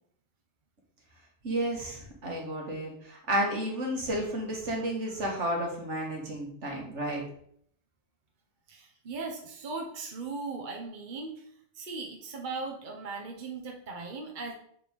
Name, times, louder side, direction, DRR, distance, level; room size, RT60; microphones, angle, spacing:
voice 1, 1.4-7.2, right 1 dB, 70° right, -1 dB, 2.0 m, -32 dB
voice 2, 8.7-11.5 11.7-14.5, right 4 dB, 45° right, 0 dB, 1.1 m, -38 dB
7.6 x 4.6 x 3.6 m, 0.64 s
omnidirectional pair, 1.2 m